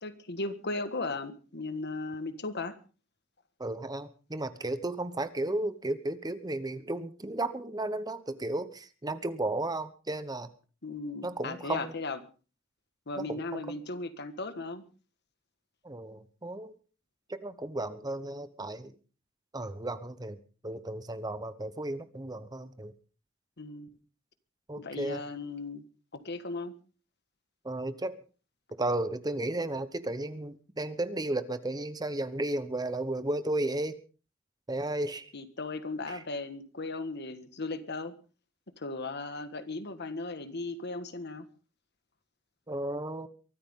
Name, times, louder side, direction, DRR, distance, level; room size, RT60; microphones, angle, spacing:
voice 1, 0.0-2.8 10.8-12.2 13.1-14.9 23.6-23.9 24.8-25.8 26.1-26.7 35.3-38.2 38.8-41.4, left 3 dB, 55° left, 10 dB, 1.7 m, -36 dB
voice 2, 3.6-10.5 11.2-11.9 13.2-13.6 15.8-16.8 17.3-18.9 19.5-20.4 20.6-22.9 24.7-25.2 27.6-28.1 28.8-34.0 34.7-35.3 36.1-36.2 42.7-43.3, right 2 dB, 20° right, 12 dB, 1.0 m, -34 dB
23.5 x 13.5 x 3.7 m, 0.37 s
head